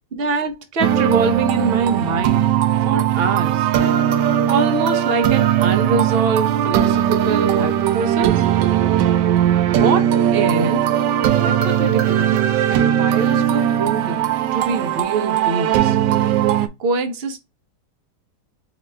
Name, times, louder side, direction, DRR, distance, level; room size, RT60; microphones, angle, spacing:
voice 1, 0.1-3.7 4.5-8.4 9.7-10.9 11.3-12.4 12.7-16.0 16.8-17.4, right 4 dB, 45° right, 0.8 m, -24 dB
sound 1, 0.8-16.7, right 10 dB, 85° right, 1.3 m, -18 dB
4.9 x 3.0 x 3.3 m
omnidirectional pair, 1.9 m